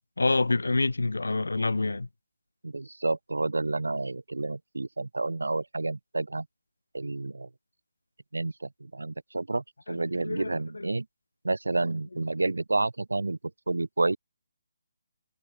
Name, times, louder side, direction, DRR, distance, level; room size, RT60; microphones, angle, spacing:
voice 1, 0.2-2.1 9.9-10.9, left 3 dB, 85° left, 3.0 m, -27 dB
voice 2, 2.6-6.5 6.9-7.5 8.3-11.1 11.4-13.4 13.7-14.2, right 2 dB, 90° right, 8.0 m, -30 dB
figure-of-eight pair, 155°, 0 cm